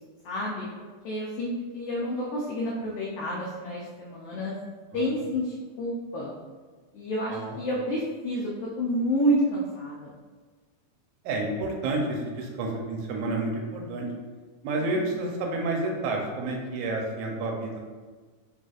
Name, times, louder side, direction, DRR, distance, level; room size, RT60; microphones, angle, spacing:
voice 1, 0.2-0.6 1.0-4.5 4.9-6.3 6.9-10.1, equal, 85° left, -4 dB, 1.3 m, -29 dB
voice 2, 11.2-14.1 14.6-17.8, right 2 dB, 80° right, 1 dB, 2.1 m, -30 dB
4.6 x 4.1 x 2.4 m, 1.4 s
omnidirectional pair, 3.4 m